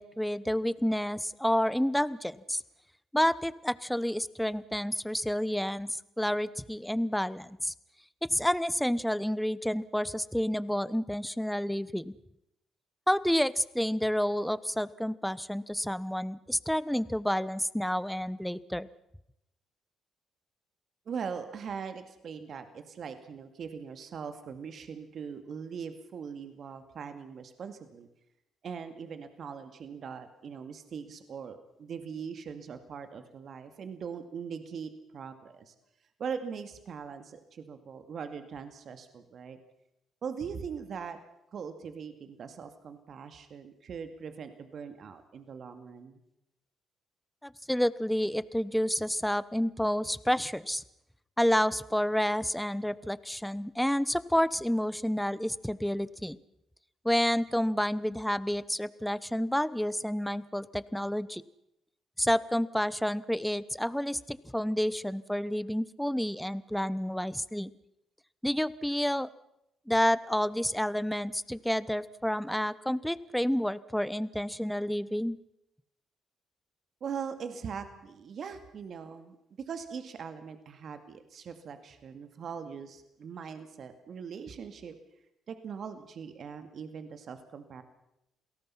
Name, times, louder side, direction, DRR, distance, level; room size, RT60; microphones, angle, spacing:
voice 1, 0.0-2.6 3.1-7.7 8.3-12.1 13.1-18.9 47.4-50.8 51.4-56.4 57.0-61.4 62.2-67.7 68.4-69.3 69.9-75.4, equal, 5° left, 18 dB, 1.1 m, -29 dB
voice 2, 21.1-28.1 28.6-35.7 36.2-39.6 40.2-41.2 41.5-46.2 77.0-84.9 85.5-87.8, right 6 dB, 60° right, 8 dB, 2.2 m, -41 dB
28.0 x 18.0 x 5.8 m, 0.81 s
supercardioid pair, 60°, 0 cm